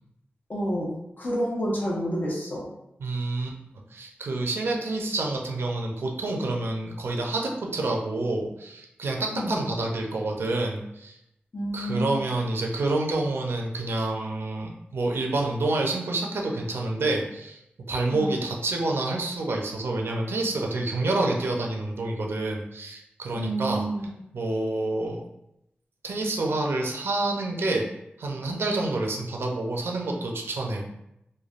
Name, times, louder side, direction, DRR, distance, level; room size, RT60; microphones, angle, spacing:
voice 1, 0.5-0.9 1.2-2.6 9.3-9.6 11.5-12.2 18.1-18.3 23.3-24.1, equal, 45° left, -4 dB, 0.9 m, -29 dB
voice 2, 3.0-3.6 3.9-11.2 11.7-17.6 17.9-23.9 24.3-25.2 26.0-27.9 28.2-30.8, right 2 dB, 85° right, 0 dB, 0.5 m, -28 dB
3.2 x 2.2 x 2.4 m, 0.83 s
wide cardioid pair, 80°, 4 cm